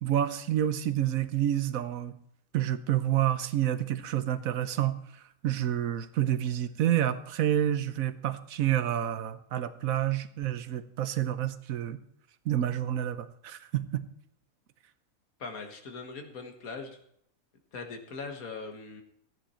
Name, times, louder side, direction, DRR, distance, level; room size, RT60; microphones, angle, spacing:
voice 1, 0.0-2.2 2.5-5.0 5.4-12.0 12.5-14.0, right 11 dB, 80° right, 12 dB, 1.2 m, -28 dB
voice 2, 15.4-17.0 17.7-19.0, left 4 dB, 85° left, 5 dB, 2.0 m, -40 dB
14.0 x 9.6 x 4.3 m, 0.70 s
omnidirectional pair, 1.5 m